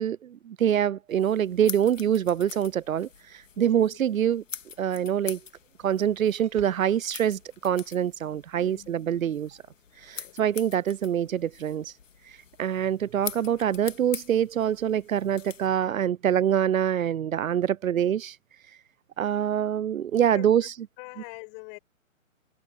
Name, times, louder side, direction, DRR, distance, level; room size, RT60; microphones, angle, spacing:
voice 1, 0.0-3.1 3.6-4.4 4.8-5.4 5.8-9.5 10.1-11.9 12.6-18.3 19.2-20.6, right 9 dB, 90° right, 0.6 m, -25 dB
sound 1, 1.1-15.7, left 7 dB, 70° left, 2.4 m, -44 dB
sound 2, 2.8-8.8, right 12 dB, 15° right, 5.6 m, -62 dB
voice 2, 3.6-4.0 8.6-9.0 10.0-10.4 12.6-12.7 20.1-20.7 21.0-21.8, left 39 dB, 25° left, 6.9 m, -45 dB
open air
hypercardioid pair, 140°, 40 cm